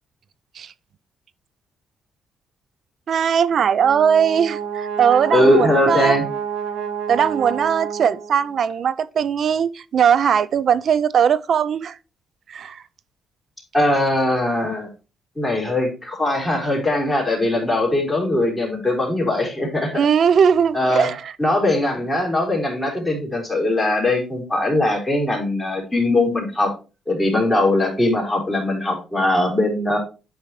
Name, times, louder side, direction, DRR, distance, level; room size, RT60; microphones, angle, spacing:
voice 1, 3.1-6.2 7.1-12.0 12.5-12.8 19.9-21.3, right 7 dB, 60° right, 0.4 m, -19 dB
Brass instrument, 3.5-8.6, right 7 dB, 85° right, 1.4 m, -29 dB
voice 2, 5.3-6.2 13.7-14.9 15.4-20.0 20.7-21.1 21.4-26.7 27.1-30.0, left 1 dB, 10° left, 4.1 m, -20 dB
8.7 x 5.6 x 3.1 m
cardioid pair, 90°, 0 cm